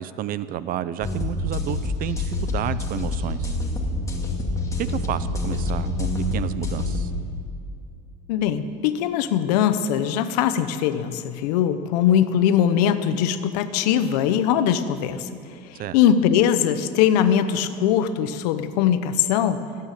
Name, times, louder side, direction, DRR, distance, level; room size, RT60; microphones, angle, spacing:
voice 1, 0.0-3.5 4.8-7.1 15.7-16.0, right 11 dB, 45° right, 15 dB, 0.7 m, -31 dB
sound 1, 1.0-7.0, left 2 dB, 15° left, 2.2 m, -26 dB
voice 2, 8.3-15.3 15.7-19.6, left 9 dB, 80° left, 11 dB, 0.9 m, -21 dB
16.5 x 8.9 x 9.1 m, 2.4 s
supercardioid pair, 115°, 20 cm